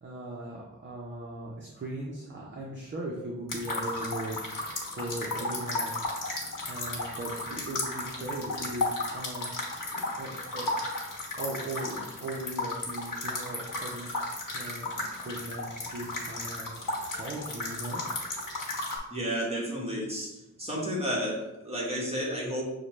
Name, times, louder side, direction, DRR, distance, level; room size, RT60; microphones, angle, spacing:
voice 1, 0.0-6.2 6.7-9.5 10.2-10.8 11.4-14.9 15.2-16.7 17.2-18.0, right 2 dB, 35° right, -3 dB, 0.6 m, -38 dB
sound 1, 3.5-19.0, left 2 dB, 85° left, 1.1 m, -34 dB
voice 2, 19.1-22.6, equal, 20° right, -5 dB, 1.2 m, -32 dB
6.4 x 2.1 x 3.0 m, 0.97 s
wide cardioid pair, 140°, 31 cm